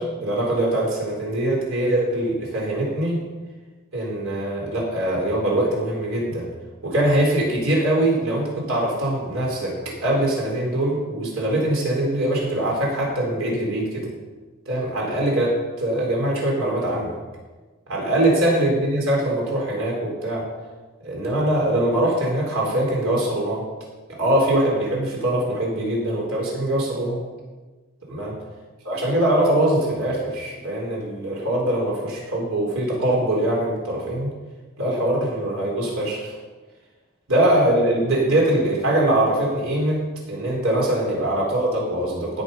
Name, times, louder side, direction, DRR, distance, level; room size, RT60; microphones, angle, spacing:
voice 1, 0.0-3.3 3.9-6.5 6.8-14.1 14.7-17.1 17.9-20.4 21.0-23.6 24.2-27.2 28.1-28.4 28.8-34.3 34.8-36.3 37.3-42.4, right 1 dB, 65° right, -3 dB, 4.2 m, -22 dB
16.5 x 6.3 x 5.5 m, 1.3 s
head